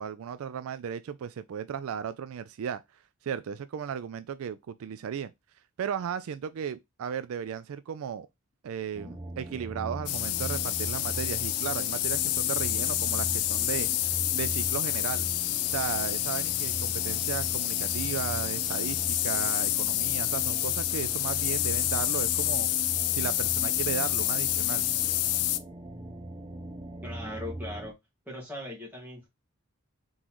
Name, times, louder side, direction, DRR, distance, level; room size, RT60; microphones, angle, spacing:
voice 1, 0.0-2.8 3.2-5.3 5.8-8.3 8.6-13.9 14.3-15.3 15.7-19.0 19.2-22.7 23.1-24.9, right 8 dB, 70° right, 0.3 m, -35 dB
sound 1, 8.9-27.9, right 1 dB, 25° right, 0.9 m, -40 dB
sound 2, 10.1-25.6, left 14 dB, 85° left, 0.4 m, -28 dB
voice 2, 27.0-27.9 28.2-29.3, left 1 dB, 10° right, 1.8 m, -40 dB
3.8 x 3.8 x 3.0 m
head